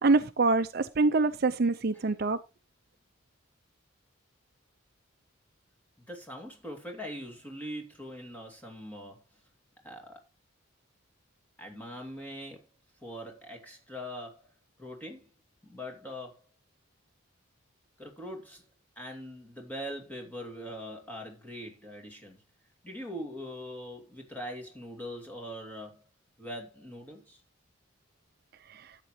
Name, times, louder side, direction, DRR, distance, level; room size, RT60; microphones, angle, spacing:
voice 1, 0.0-2.4, right 3 dB, 45° right, 0.5 m, -25 dB
voice 2, 6.0-9.2 9.8-10.2 11.6-12.6 13.0-14.5 14.8-15.3 15.6-16.4 18.0-18.6 19.0-22.4 22.8-26.0 26.4-27.4, equal, 10° left, 2.5 m, -42 dB
12.5 x 8.2 x 3.1 m
head